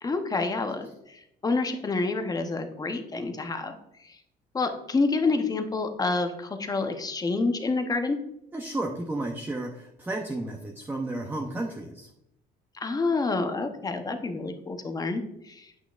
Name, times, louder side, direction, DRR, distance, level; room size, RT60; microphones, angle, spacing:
voice 1, 0.0-3.7 4.0-4.2 4.5-8.2 12.7-15.7, left 3 dB, 20° left, 6 dB, 0.8 m, -28 dB
voice 2, 8.5-12.1, right 2 dB, 10° right, 1 dB, 0.7 m, -32 dB
8.9 x 5.8 x 2.4 m, 0.83 s
cardioid pair, 110°, 17 cm